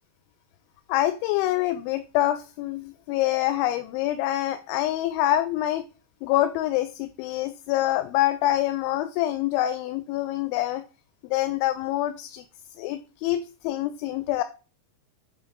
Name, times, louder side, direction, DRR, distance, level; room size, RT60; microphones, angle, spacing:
voice 1, 0.9-5.9 6.2-10.8 11.2-12.5 12.8-14.4, left 14 dB, 90° left, 9 dB, 3.1 m, -26 dB
8.5 x 3.3 x 6.6 m, 0.33 s
omnidirectional pair, 5.3 m